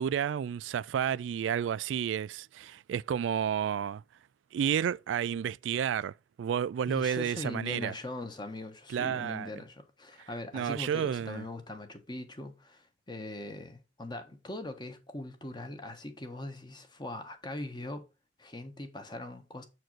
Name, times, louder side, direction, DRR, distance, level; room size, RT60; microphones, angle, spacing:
voice 1, 0.0-4.0 4.5-7.9 8.9-9.6 10.2-10.3 10.5-11.5, right 8 dB, 85° right, 0.3 m, -31 dB
voice 2, 6.9-18.1 18.4-19.6, left 2 dB, 25° left, 1.3 m, -41 dB
7.5 x 4.6 x 4.5 m
head